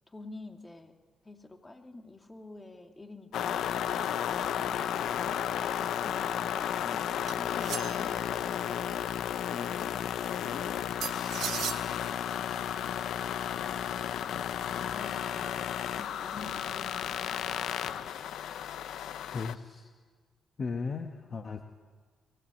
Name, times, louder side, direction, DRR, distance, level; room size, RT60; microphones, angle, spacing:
voice 1, 0.1-1.0 1.2-3.9 4.4-5.1 13.6-14.4 14.7-17.5, left 2 dB, 25° left, 4 dB, 2.6 m, -49 dB
sound 1, 3.3-19.5, left 9 dB, 80° left, 0.8 m, -33 dB
sound 2, 7.3-8.2 11.0-11.8, right 11 dB, 80° right, 0.9 m, -36 dB
voice 2, 19.3-19.9 20.6-21.6, left 4 dB, 50° left, 5 dB, 1.4 m, -36 dB
23.0 x 17.5 x 8.6 m, 1.5 s
supercardioid pair, 65°, 0 cm